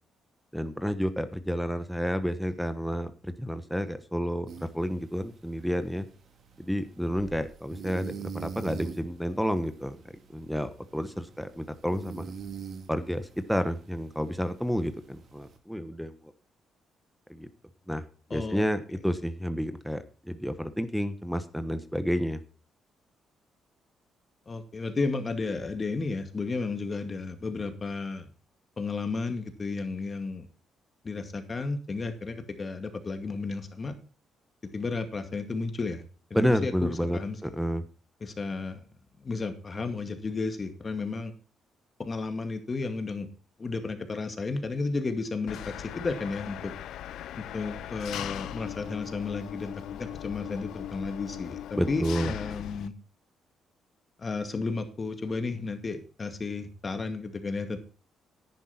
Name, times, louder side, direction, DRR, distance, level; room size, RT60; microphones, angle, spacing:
voice 1, 0.5-6.1 6.6-10.0 10.3-12.3 12.9-16.3 17.3-17.5 17.9-18.0 18.3-22.4 36.3-37.8 51.8-52.3, equal, ahead, 9 dB, 1.1 m, -30 dB
sound 1, 4.5-15.6, right 6 dB, 60° right, 2.2 m, -45 dB
voice 2, 18.3-18.7 24.5-28.3 28.8-30.5 31.0-34.0 34.7-36.0 36.3-37.4 38.2-38.8 39.2-41.3 42.0-43.3 43.6-46.7 47.5-52.9 54.2-57.8, left 3 dB, 35° left, 7 dB, 2.2 m, -33 dB
Engine, 45.5-52.9, left 12 dB, 80° left, 0.4 m, -39 dB
10.5 x 10.5 x 4.3 m, 0.37 s
cardioid pair, 90°, 0 cm